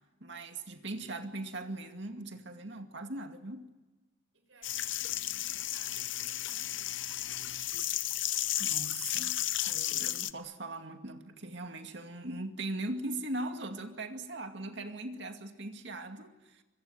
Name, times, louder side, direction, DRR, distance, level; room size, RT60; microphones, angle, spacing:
voice 1, 0.2-3.7 8.6-9.4 9.7-16.6, right 2 dB, 60° right, 2.3 m, -40 dB
voice 2, 4.3-7.7, right 4 dB, 90° right, 6.9 m, -61 dB
sound 1, 4.6-10.3, left 13 dB, 70° left, 0.8 m, -33 dB
25.5 x 22.0 x 9.2 m
head